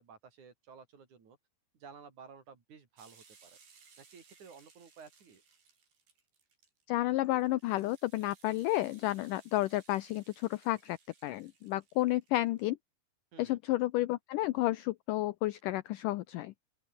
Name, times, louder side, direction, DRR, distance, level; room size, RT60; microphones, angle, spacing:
voice 1, 0.0-1.4 1.7-3.6 4.0-5.4 13.3-13.6, right 6 dB, 50° right, 4.6 m, -54 dB
sound 1, 3.0-12.7, right 5 dB, 80° right, 7.7 m, -63 dB
voice 2, 6.9-11.0 11.2-12.8 13.4-16.5, left 16 dB, 80° left, 1.9 m, -31 dB
open air
omnidirectional pair, 4.5 m